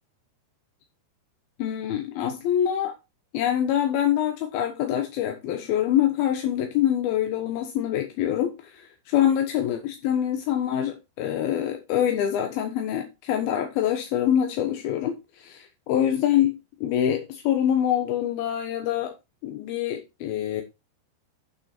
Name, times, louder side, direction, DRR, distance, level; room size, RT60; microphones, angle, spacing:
voice 1, 1.6-2.9 3.3-16.5 16.8-19.1 19.4-20.6, left 10 dB, 70° left, 2.4 m, -25 dB
8.8 x 6.9 x 4.3 m
omnidirectional pair, 5.4 m